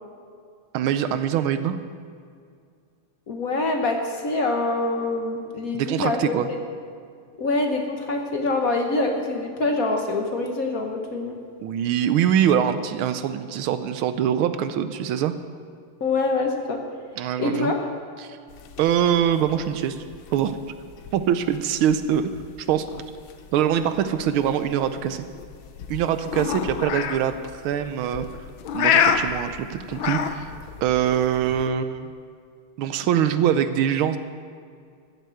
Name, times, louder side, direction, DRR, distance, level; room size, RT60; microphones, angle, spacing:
voice 1, 0.7-1.8 5.7-6.5 11.6-15.3 17.2-17.7 18.2-18.4 18.8-20.0 20.3-20.5 21.1-22.3 22.6-22.9 23.5-25.2 25.9-28.3 28.7-30.5 30.8-32.1 32.8-34.2, right 9 dB, 80° right, 11 dB, 1.5 m, -23 dB
voice 2, 3.3-6.6 7.4-11.4 16.0-16.8 17.4-17.7, left 2 dB, 50° left, 3 dB, 1.3 m, -25 dB
sound 1, 18.5-31.7, left 7 dB, 70° left, 1.5 m, -29 dB
13.5 x 8.1 x 7.7 m, 2.3 s
omnidirectional pair, 2.4 m